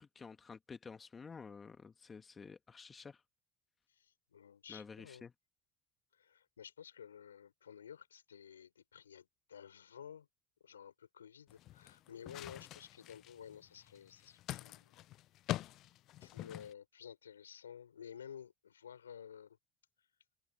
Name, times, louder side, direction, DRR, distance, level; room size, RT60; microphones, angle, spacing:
voice 1, 0.0-3.2 4.7-5.3, left 5 dB, 30° left, 1.8 m, -51 dB
voice 2, 3.9-5.3 6.1-10.3 10.6-15.0 16.2-19.6, left 8 dB, 85° left, 4.5 m, -53 dB
sound 1, 11.5-16.7, left 15 dB, 55° left, 0.5 m, -45 dB
hypercardioid pair, 65°, 0 cm